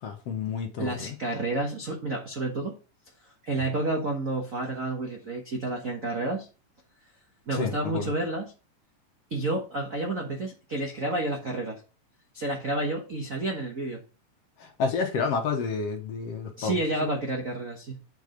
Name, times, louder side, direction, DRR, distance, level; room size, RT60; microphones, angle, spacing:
voice 1, 0.0-1.2 7.5-8.1 14.6-16.8, left 5 dB, 60° left, 1.9 m, -30 dB
voice 2, 0.8-2.8 3.4-6.5 7.5-8.5 9.3-11.8 12.3-14.0 16.6-18.0, right 2 dB, 60° right, 0.8 m, -30 dB
8.2 x 4.7 x 5.0 m
omnidirectional pair, 3.6 m